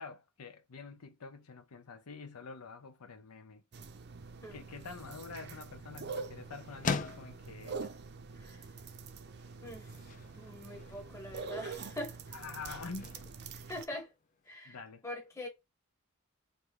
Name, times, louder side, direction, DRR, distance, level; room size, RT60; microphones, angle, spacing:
voice 1, 0.0-3.6 4.5-7.9 12.3-13.1 14.7-15.0, left 4 dB, 85° left, 0.7 m, -47 dB
sound 1, 3.7-13.8, right 4 dB, 50° right, 0.5 m, -45 dB
sound 2, 4.8-14.6, left 5 dB, 35° left, 0.4 m, -44 dB
voice 2, 9.6-10.0 10.3-12.2 13.7-14.1 14.5-14.8 15.0-15.5, left 1 dB, 15° left, 1.2 m, -43 dB
3.4 x 2.7 x 4.6 m
head